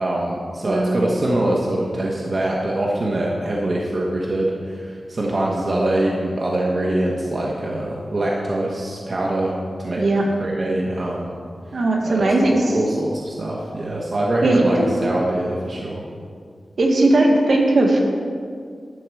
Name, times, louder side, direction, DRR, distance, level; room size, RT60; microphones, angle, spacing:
voice 1, 0.0-10.0 10.4-11.3 12.0-16.0, right 1 dB, 50° right, -3 dB, 1.3 m, -23 dB
voice 2, 0.6-1.0 10.0-10.2 11.7-12.8 14.4-14.8 16.8-18.0, right 2 dB, 65° right, 0 dB, 1.6 m, -18 dB
12.0 x 4.8 x 7.8 m, 2.1 s
wide cardioid pair, 75°, 0 cm